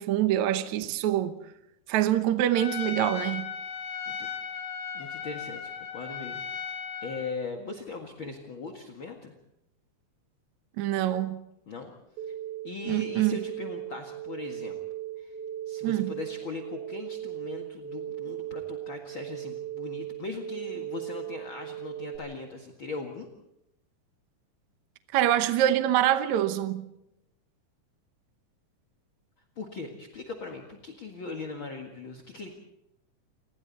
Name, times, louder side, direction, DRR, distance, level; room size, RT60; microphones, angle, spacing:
voice 1, 0.0-1.3 1.9-3.5 10.8-11.4 12.9-13.4 15.8-16.1 25.1-26.8, right 12 dB, 70° right, 2.2 m, -25 dB
Trumpet, 2.5-7.4, left 7 dB, 80° left, 3.3 m, -36 dB
voice 2, 4.1-4.6 4.9-9.4 11.7-11.9 12.2-12.3 12.6-14.8 15.2-15.4 15.7-23.3 29.6-32.5, left 4 dB, 45° left, 2.3 m, -40 dB
sound 1, 12.2-22.2, right 12 dB, 50° right, 4.1 m, -38 dB
29.5 x 22.0 x 4.2 m
omnidirectional pair, 3.7 m